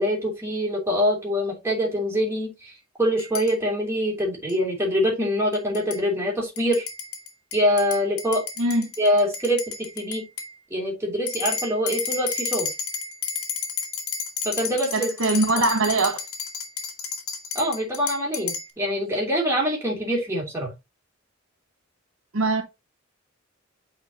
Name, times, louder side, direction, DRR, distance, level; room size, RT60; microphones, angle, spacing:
voice 1, 0.0-2.7 3.0-6.9 7.5-8.4 9.0-10.2 10.7-12.7 14.4-15.1 15.6-15.7 17.5-20.7, equal, 15° right, 2.9 m, -24 dB
sound 1, 3.2-3.5 4.5-4.6 5.5-6.0 6.6-10.5 11.3-18.7, left 6 dB, 75° left, 1.6 m, -32 dB
voice 2, 8.6-8.9 14.9-16.2 22.3-22.6, right 2 dB, 90° right, 1.3 m, -22 dB
8.2 x 4.4 x 2.8 m
head